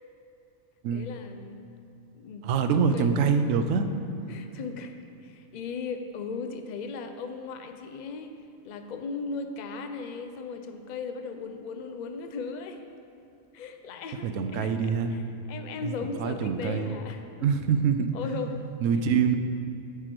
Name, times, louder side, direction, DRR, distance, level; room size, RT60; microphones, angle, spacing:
voice 1, 0.9-1.7 2.1-3.5 4.3-4.9 5.2-8.3 8.6-12.9 13.5-15.2 15.5-17.5 18.1-18.6 18.9-19.1, left 4 dB, 65° left, 6 dB, 0.4 m, -37 dB
voice 2, 2.4-3.9 14.2-15.1 15.8-15.9 16.2-17.0 17.4-18.2 18.8-19.4, right 6 dB, 80° right, 8 dB, 0.9 m, -25 dB
8.2 x 4.9 x 5.9 m, 2.6 s
omnidirectional pair, 1.4 m